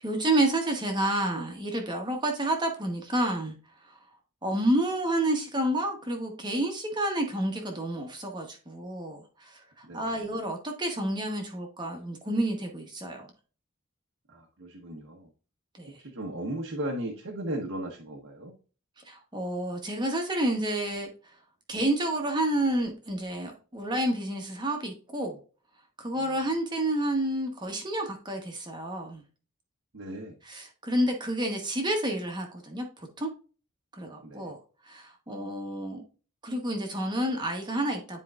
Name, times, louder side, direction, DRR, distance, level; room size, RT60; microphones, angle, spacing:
voice 1, 0.0-3.5 3.9-4.0 4.4-13.3 15.8-16.0 19.1-21.1 21.7-25.4 26.0-29.2 30.4-32.9 33.2-33.3 33.9-34.6 34.8-36.0 36.4-38.2, right 1 dB, 20° right, 2 dB, 1.0 m, -29 dB
voice 2, 9.8-10.2 14.3-15.3 16.0-18.5 26.2-26.4 29.9-30.3 34.2-34.5, right 1 dB, 70° right, 0 dB, 1.0 m, -36 dB
10.0 x 4.5 x 2.4 m, 0.37 s
head